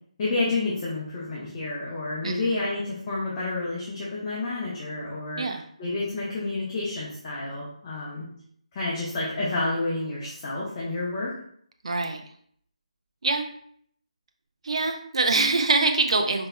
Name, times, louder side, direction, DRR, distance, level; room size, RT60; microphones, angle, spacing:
voice 1, 0.2-5.4 5.8-8.2 8.7-11.3, left 2 dB, 25° left, -8 dB, 1.1 m, -29 dB
voice 2, 2.2-2.6 5.4-5.6 11.8-12.2 13.2-13.5 14.6-16.5, right 3 dB, 55° right, 4 dB, 0.6 m, -24 dB
5.1 x 4.4 x 2.3 m, 0.63 s
figure-of-eight pair, 155°, 4 cm